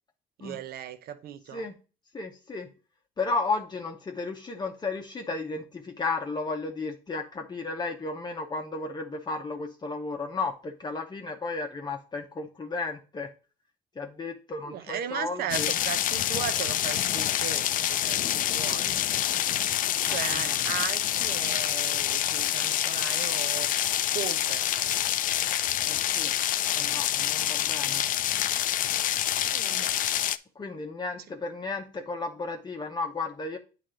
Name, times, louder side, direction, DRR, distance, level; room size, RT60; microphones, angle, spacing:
voice 1, 0.4-1.7 14.6-19.0 20.1-23.7 24.0-24.7 27.8-28.0 29.5-30.0, right 9 dB, 65° right, 0.8 m, -37 dB
voice 2, 2.1-2.7 3.2-13.3 14.0-15.7 20.1-20.2 25.9-26.3 26.7-28.0 30.6-33.6, left 3 dB, 25° left, 0.8 m, -33 dB
sound 1, 15.5-30.4, left 11 dB, 55° left, 0.4 m, -27 dB
8.6 x 3.3 x 3.7 m
cardioid pair, 110°, 17 cm